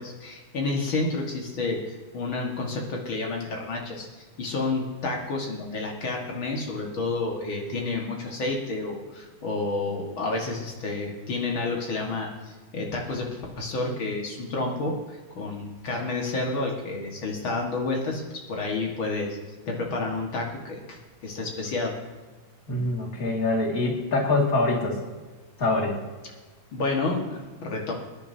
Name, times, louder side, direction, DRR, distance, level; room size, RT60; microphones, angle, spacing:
voice 1, 0.0-19.4 19.7-21.9 26.7-27.9, left 3 dB, 75° left, -1 dB, 2.5 m, -30 dB
voice 2, 22.7-25.0 25.6-26.0, left 2 dB, 45° left, -1 dB, 2.6 m, -24 dB
23.5 x 10.5 x 2.8 m, 1.3 s
omnidirectional pair, 2.2 m